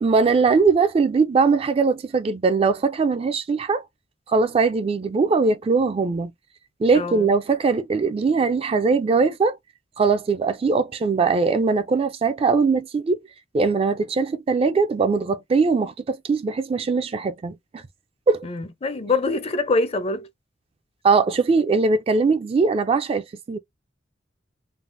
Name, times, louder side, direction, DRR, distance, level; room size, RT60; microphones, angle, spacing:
voice 1, 0.0-3.8 4.3-6.3 6.8-9.6 10.0-13.2 13.5-17.8 18.3-18.5 21.0-23.6, right 4 dB, 30° right, 0.3 m, -21 dB
voice 2, 6.9-7.3 18.4-20.3, left 3 dB, 35° left, 0.5 m, -24 dB
3.3 x 2.0 x 2.5 m
head